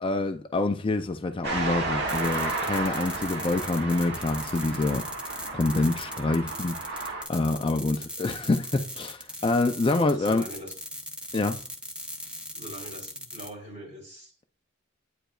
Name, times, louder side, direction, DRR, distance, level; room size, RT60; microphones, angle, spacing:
voice 1, 0.0-5.0 5.5-10.4 11.3-11.6, left 2 dB, 25° left, 0.4 m, -26 dB
sound 1, 1.4-7.2, right 2 dB, 60° right, 1.7 m, -32 dB
sound 2, 2.1-13.5, equal, 5° right, 0.9 m, -39 dB
voice 2, 10.0-10.8 12.5-14.4, equal, 40° right, 3.5 m, -42 dB
8.9 x 5.0 x 2.4 m
head